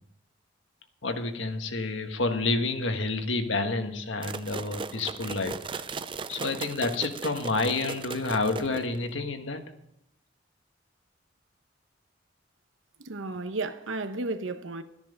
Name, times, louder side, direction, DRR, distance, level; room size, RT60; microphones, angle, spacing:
voice 1, 1.0-5.9 6.3-9.6, left 3 dB, 85° left, 1.4 m, -29 dB
sound 1, 4.2-9.1, right 4 dB, 25° right, 0.4 m, -37 dB
voice 2, 13.0-14.8, right 3 dB, 85° right, 1.1 m, -33 dB
12.5 x 10.5 x 5.2 m
head